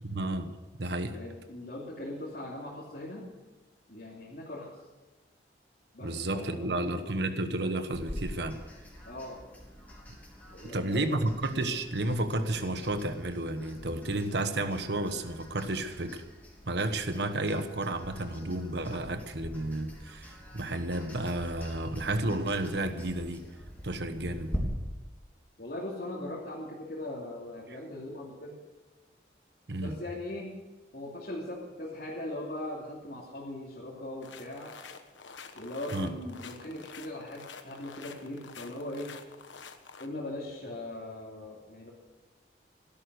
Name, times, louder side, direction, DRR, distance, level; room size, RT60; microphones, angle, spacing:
voice 1, 0.0-1.2 6.0-8.6 10.7-16.2 16.6-23.5 23.8-24.5 29.7-30.0 35.9-36.1, right 2 dB, 65° right, 9 dB, 1.3 m, -32 dB
voice 2, 1.1-3.2 3.9-4.8 5.9-7.0 9.0-9.4 10.5-11.2 25.6-28.6 29.8-30.5 30.9-34.8 35.5-39.2 40.0-41.9, left 1 dB, 55° left, -6 dB, 3.0 m, -40 dB
sound 1, 7.9-24.6, equal, 10° left, 3.3 m, -45 dB
sound 2, 34.2-40.1, left 5 dB, 85° left, 1.3 m, -48 dB
16.5 x 12.5 x 6.5 m, 1.2 s
head